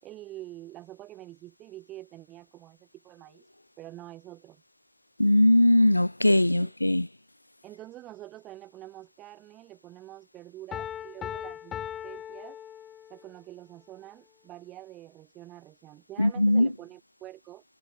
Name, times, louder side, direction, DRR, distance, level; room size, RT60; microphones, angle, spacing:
voice 1, 0.0-3.5 3.8-4.6 6.5-6.7 7.6-11.8 12.0-12.6 13.1-17.6, right 15 dB, 35° right, 5.5 m, -46 dB
voice 2, 5.2-7.1 16.2-16.7, left 1 dB, 85° left, 0.3 m, -20 dB
Piano, 10.7-13.3, left 10 dB, 25° left, 3.5 m, -38 dB
figure-of-eight pair, 90°, 0 cm